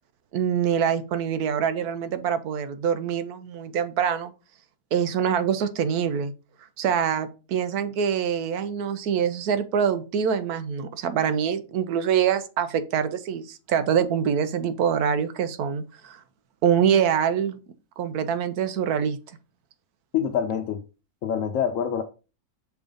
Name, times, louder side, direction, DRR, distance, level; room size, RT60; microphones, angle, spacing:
voice 1, 0.3-4.3 4.9-6.3 6.8-16.2 16.6-17.6 18.0-19.2, right 8 dB, 90° right, 1.3 m, -25 dB
voice 2, 20.1-20.8 21.2-22.0, left 8 dB, 65° left, 1.0 m, -25 dB
5.9 x 3.8 x 5.1 m
omnidirectional pair, 1.6 m